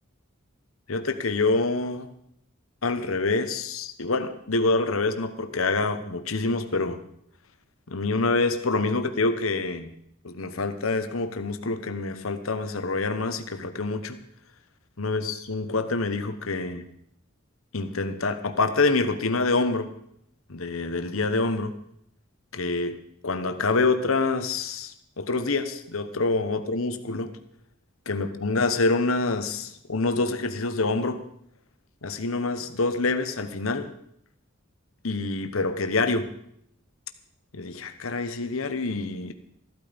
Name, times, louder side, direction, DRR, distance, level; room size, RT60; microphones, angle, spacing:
voice 1, 0.9-2.1 2.8-7.0 7.9-9.9 10.2-14.2 15.0-16.8 17.7-19.9 20.5-21.7 22.5-23.0 23.2-27.3 28.1-31.2 32.0-33.9 35.0-36.3 37.5-39.3, left 3 dB, 85° left, 9 dB, 1.2 m, -26 dB
14.5 x 12.5 x 5.2 m, 0.70 s
head